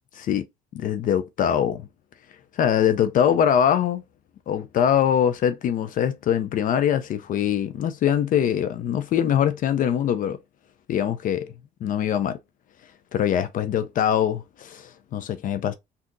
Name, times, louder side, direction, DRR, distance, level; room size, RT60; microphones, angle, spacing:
voice 1, 0.7-1.9 2.5-4.0 4.5-10.4 10.9-11.5 11.8-12.4 13.1-15.7, left 9 dB, 55° left, 0.4 m, -23 dB
3.6 x 2.8 x 2.5 m
cardioid pair, 110°, 17 cm